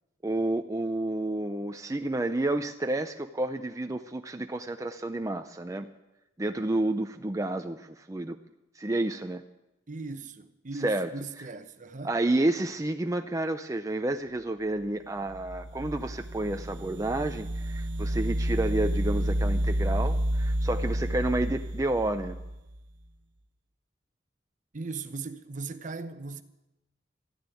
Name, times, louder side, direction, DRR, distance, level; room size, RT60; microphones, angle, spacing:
voice 1, 0.2-5.9 6.4-8.4 8.7-9.4 10.7-11.1 12.0-22.4, right 2 dB, 20° right, 0.5 m, -30 dB
voice 2, 9.9-12.1 24.7-26.4, right 3 dB, 45° right, 0.9 m, -38 dB
sound 1, 15.3-22.8, right 1 dB, 75° right, 0.9 m, -30 dB
14.0 x 10.5 x 9.1 m
head